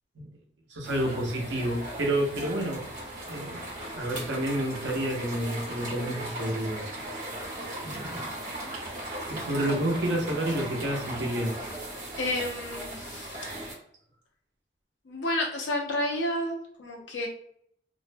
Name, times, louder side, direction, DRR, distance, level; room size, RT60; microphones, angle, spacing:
voice 1, 0.7-2.8 3.3-6.8 7.8-8.2 8.6-8.7 9.3-11.6, right 1 dB, 80° right, 0 dB, 0.7 m, -30 dB
sound 1, 0.8-13.7, right 1 dB, 45° right, 0.9 m, -38 dB
sound 2, 5.9-12.0, right 1 dB, 15° right, 0.4 m, -46 dB
voice 2, 12.2-13.5 15.1-17.3, left 1 dB, 85° left, 0 dB, 0.7 m, -31 dB
2.4 x 2.1 x 2.5 m, 0.65 s
head